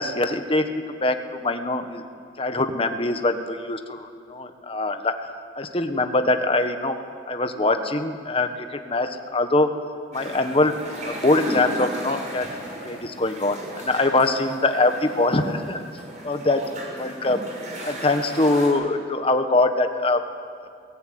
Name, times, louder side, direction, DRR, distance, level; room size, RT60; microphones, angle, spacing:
voice 1, 0.0-2.0 2.4-5.2 5.6-7.0 7.3-9.7 10.1-12.5 12.8-15.8 16.2-16.7 17.0-17.4 17.8-20.2, left 2 dB, 30° left, 7 dB, 1.3 m, -23 dB
sound 1, 10.1-18.7, right 1 dB, 40° right, 6.4 m, -36 dB
22.0 x 17.5 x 9.4 m, 2.4 s
head